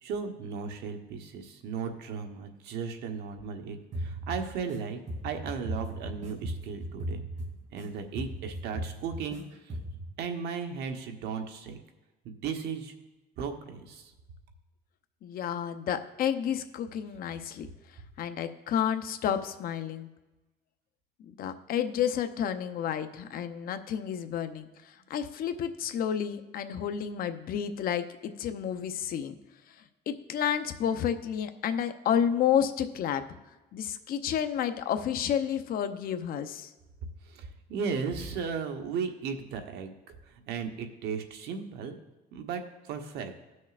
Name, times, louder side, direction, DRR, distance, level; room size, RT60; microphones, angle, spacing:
voice 1, 0.0-7.2 7.7-9.8 10.2-11.8 12.2-12.9 13.4-14.1 37.2-40.0 40.2-42.0 42.3-42.6 42.9-43.3, right 6 dB, 80° right, 5 dB, 1.1 m, -36 dB
sound 1, 3.9-4.8 5.1-7.8 8.1-9.4 9.7-10.1, right 1 dB, 45° right, 2.8 m, -37 dB
voice 2, 15.2-17.7 18.2-20.1 21.2-29.3 30.1-33.2 33.7-36.7, left 9 dB, 60° left, 8 dB, 0.7 m, -30 dB
17.5 x 6.4 x 2.5 m, 1.1 s
cardioid pair, 110°, 17 cm